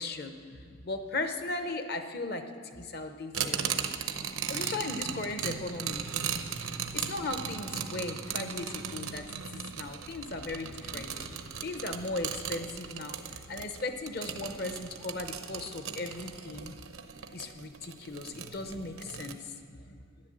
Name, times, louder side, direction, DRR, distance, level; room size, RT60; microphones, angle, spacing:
voice 1, 0.0-2.4 2.7-4.0 4.5-6.1 6.9-11.1 11.6-16.8 17.3-20.0, left 2 dB, 50° left, 8 dB, 0.8 m, -37 dB
sound 1, 3.3-19.3, right 7 dB, 90° right, 0.8 m, -37 dB
11.5 x 10.5 x 7.5 m, 2.2 s
head